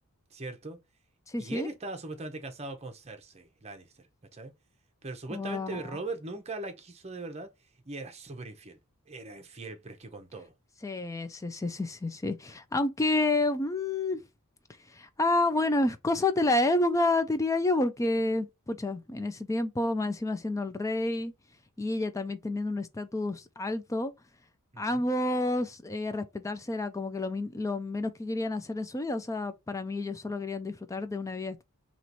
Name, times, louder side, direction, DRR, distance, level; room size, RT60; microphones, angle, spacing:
voice 1, 0.3-0.8 1.4-4.1 4.3-4.5 5.0-7.5 7.9-8.8 9.1-10.5 24.7-25.0, right 2 dB, 30° right, 0.8 m, -40 dB
voice 2, 1.3-1.7 5.3-5.8 10.8-14.2 14.9-21.3 21.8-24.1 24.8-31.6, left 2 dB, 15° left, 0.3 m, -29 dB
3.0 x 3.0 x 4.0 m
head